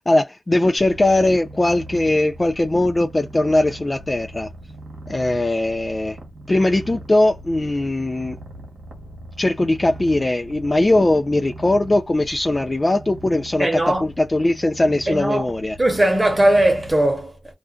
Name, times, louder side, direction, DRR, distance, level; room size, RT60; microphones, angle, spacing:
voice 1, 0.1-4.5 5.1-6.2 6.5-8.4 9.4-15.8, left 2 dB, 30° left, 0.3 m, -20 dB
Purr, 0.8-16.9, right 1 dB, 75° right, 0.9 m, -39 dB
voice 2, 13.6-14.0 15.1-15.5 15.8-17.5, right 1 dB, 25° right, 1.0 m, -19 dB
2.5 x 2.2 x 2.2 m
cardioid pair, 60°, 0 cm